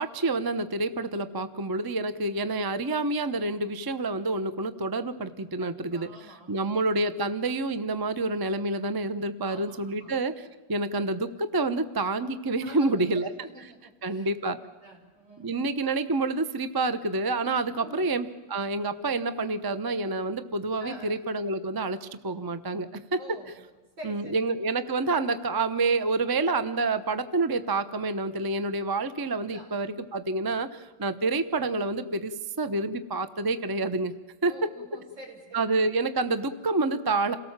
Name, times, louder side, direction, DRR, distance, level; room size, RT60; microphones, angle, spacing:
voice 1, 0.0-6.1 6.5-10.3 10.7-13.5 14.0-14.6 15.4-23.2 24.0-34.1 34.4-34.5 35.5-37.4, right 3 dB, 20° right, 11 dB, 0.5 m, -28 dB
voice 2, 5.6-6.7 9.4-10.1 12.6-14.6 14.8-15.7 17.8-18.1 20.8-21.2 23.2-23.5 24.0-24.5 29.3-29.7 34.4-35.7, right 1 dB, 80° right, -1 dB, 6.4 m, -46 dB
28.0 x 18.0 x 7.4 m, 1.3 s
omnidirectional pair, 2.0 m